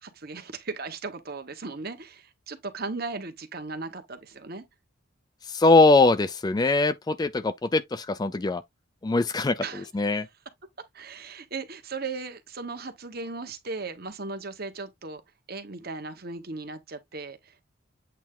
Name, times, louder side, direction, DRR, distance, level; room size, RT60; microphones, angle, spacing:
voice 1, 0.0-4.6 9.6-9.9 10.9-15.2 15.5-17.6, right 3 dB, 50° right, 1.2 m, -37 dB
voice 2, 5.5-8.6 9.0-9.6 9.9-10.3, left 3 dB, 20° left, 0.3 m, -21 dB
8.2 x 3.3 x 3.7 m
head